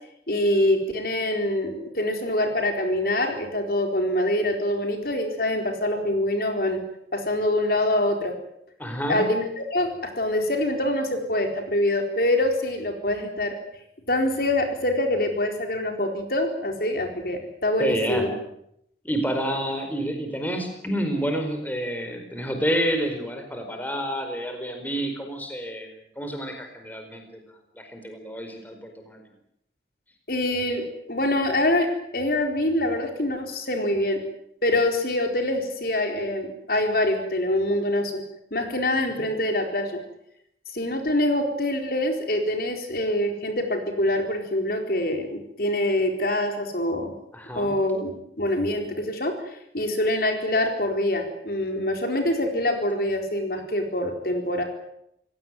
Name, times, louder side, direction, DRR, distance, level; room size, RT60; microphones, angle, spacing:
voice 1, 0.3-6.8 7.1-8.3 9.1-13.5 14.1-18.3 30.3-30.8 31.1-31.9 32.1-34.2 34.6-38.2 38.5-40.0 40.7-47.1 47.6-54.6, left 1 dB, 55° left, 4 dB, 4.3 m, -25 dB
voice 2, 8.8-9.2 17.8-18.4 19.0-27.3 27.8-29.2 47.3-47.7, equal, 10° left, 5 dB, 4.7 m, -29 dB
28.0 x 17.0 x 9.3 m, 0.76 s
head